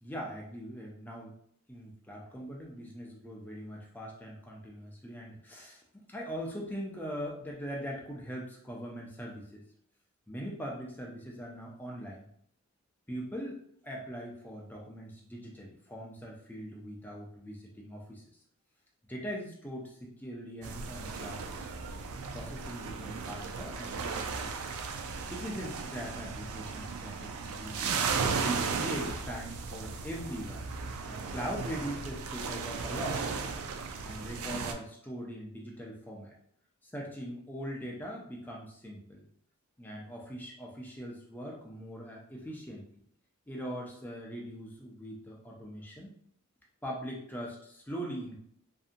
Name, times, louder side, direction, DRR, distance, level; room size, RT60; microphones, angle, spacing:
voice 1, 0.0-1.3 1.7-9.6 10.3-12.3 13.1-18.2 19.1-21.6 22.1-24.6 25.2-28.0 28.4-30.6 31.1-33.3 34.0-36.3 36.8-39.2 39.8-42.8 43.5-46.1 46.8-48.4, equal, 10° left, -2 dB, 0.4 m, -41 dB
sound 1, 20.6-34.7, right 5 dB, 75° right, 0.3 m, -36 dB
2.7 x 2.5 x 2.5 m, 0.67 s
head